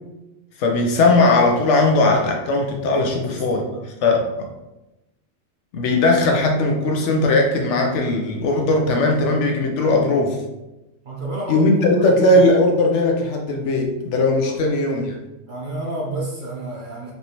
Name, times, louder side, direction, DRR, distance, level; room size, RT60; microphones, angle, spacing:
voice 1, 0.6-3.6 4.0-4.5 5.7-10.4 11.5-15.1, left 2 dB, 70° left, 2 dB, 0.9 m, -18 dB
voice 2, 3.0-4.3 11.0-11.7 12.0-12.1 14.5-14.6 15.5-17.1, right 2 dB, 50° right, -4 dB, 0.7 m, -31 dB
3.3 x 2.7 x 2.8 m, 0.96 s
omnidirectional pair, 1.3 m